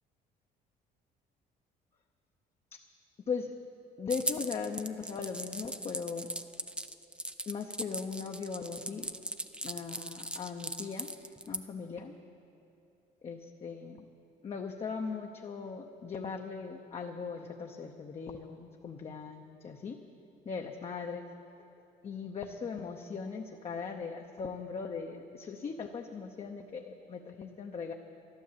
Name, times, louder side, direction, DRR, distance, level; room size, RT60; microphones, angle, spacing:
voice 1, 4.0-6.3 7.5-9.1 9.6-11.1 11.5-12.1 13.2-14.1 14.4-20.0 20.5-21.3 22.0-27.9, left 5 dB, 35° left, 3 dB, 0.8 m, -39 dB
sound 1, 4.1-11.6, right 1 dB, 5° right, 0.5 m, -38 dB
12.5 x 11.5 x 7.4 m, 2.7 s
cardioid pair, 110°, 17 cm